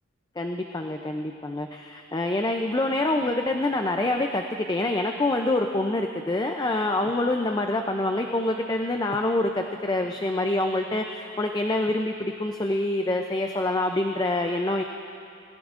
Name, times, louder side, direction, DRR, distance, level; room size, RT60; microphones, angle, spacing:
voice 1, 0.4-14.8, left 2 dB, 20° left, 4 dB, 0.4 m, -26 dB
20.5 x 17.0 x 2.5 m, 2.5 s
head